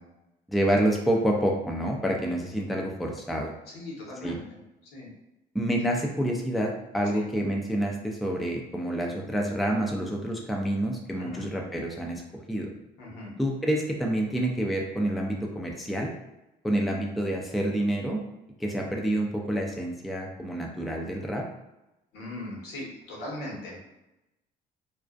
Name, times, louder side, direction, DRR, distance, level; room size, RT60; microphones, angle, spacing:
voice 1, 0.5-3.5 4.2-4.4 5.5-12.2 12.5-12.7 13.4-16.1 16.6-18.2 18.6-21.5, right 1 dB, ahead, 0 dB, 0.3 m, -28 dB
voice 2, 3.7-4.6 4.9-5.1 5.9-6.0 7.1-7.2 11.2-11.4 13.0-13.3 22.1-23.8, left 1 dB, 80° left, -3 dB, 1.0 m, -39 dB
2.4 x 2.1 x 2.4 m, 0.94 s
cardioid pair, 110°, 17 cm